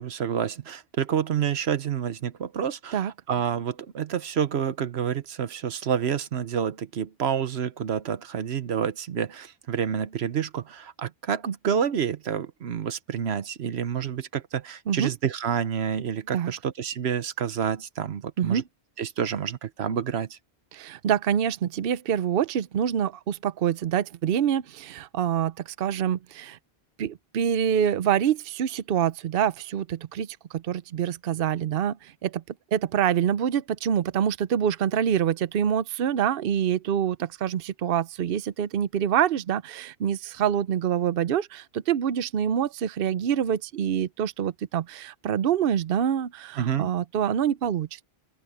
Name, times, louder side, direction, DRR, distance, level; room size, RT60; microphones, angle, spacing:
voice 1, 0.0-18.6 19.0-20.4 46.6-46.9, right 8 dB, 85° right, 1.1 m, -28 dB
voice 2, 20.7-26.6 27.0-32.4 32.7-48.0, right 9 dB, 65° right, 0.8 m, -26 dB
open air
omnidirectional pair, 1.0 m